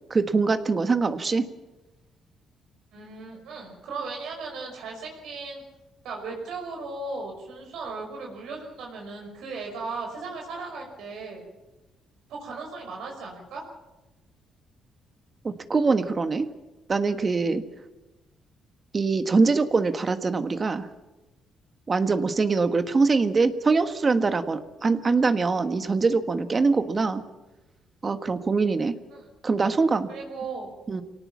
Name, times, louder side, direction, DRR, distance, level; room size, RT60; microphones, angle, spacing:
voice 1, 0.1-1.4 15.4-16.5 16.9-17.6 18.9-20.9 21.9-27.2 28.0-28.9 29.4-30.1 30.9-31.0, right 4 dB, 35° right, 9 dB, 1.4 m, -23 dB
voice 2, 2.9-5.6 6.0-11.4 12.3-13.6 29.1-29.3 30.1-30.7, right 3 dB, 80° right, 0 dB, 5.5 m, -36 dB
24.5 x 18.0 x 7.3 m, 1.1 s
cardioid pair, 90°, 0 cm